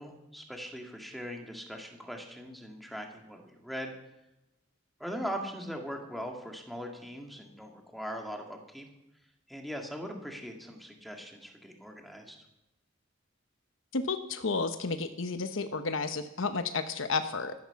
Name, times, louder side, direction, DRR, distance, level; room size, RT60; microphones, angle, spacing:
voice 1, 0.0-3.9 5.0-8.9 9.5-12.4, equal, ahead, 2 dB, 1.9 m, -40 dB
voice 2, 13.9-17.5, left 4 dB, 85° left, 8 dB, 0.9 m, -32 dB
13.5 x 12.0 x 5.8 m, 0.92 s
head